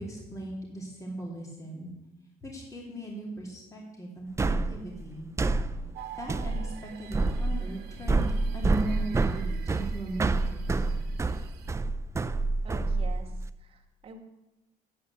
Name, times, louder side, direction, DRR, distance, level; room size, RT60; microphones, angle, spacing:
voice 1, 0.0-1.9 2.4-5.3 6.2-11.1, right 1 dB, 20° left, -2 dB, 2.7 m, -38 dB
sound 1, 4.4-13.5, right 3 dB, 15° right, 0.5 m, -28 dB
sound 2, 5.9-11.7, right 12 dB, 80° right, 1.2 m, -49 dB
voice 2, 12.6-14.2, right 4 dB, 35° right, 0 dB, 2.1 m, -46 dB
8.9 x 8.5 x 8.0 m, 0.98 s
cardioid pair, 110°, 17 cm